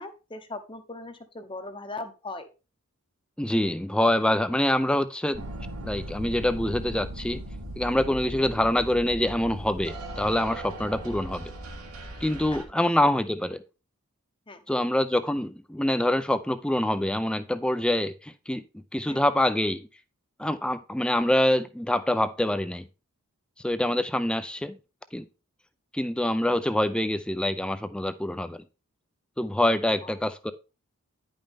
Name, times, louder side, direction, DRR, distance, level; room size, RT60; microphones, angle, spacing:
voice 1, 0.0-2.5 12.5-12.6 14.5-14.6 19.1-19.2 30.0-30.2, left 2 dB, 20° left, 8 dB, 0.8 m, -39 dB
voice 2, 3.4-5.4 5.8-7.4 7.8-11.5 12.2-13.6 14.7-19.9 20.4-22.9 23.6-24.8 25.1-25.2 25.9-28.6 29.4-30.5, left 1 dB, 5° left, 11 dB, 0.4 m, -25 dB
sound 1, 5.3-12.6, right 1 dB, 85° right, 1.7 m, -38 dB
10.0 x 5.4 x 3.5 m, 0.31 s
head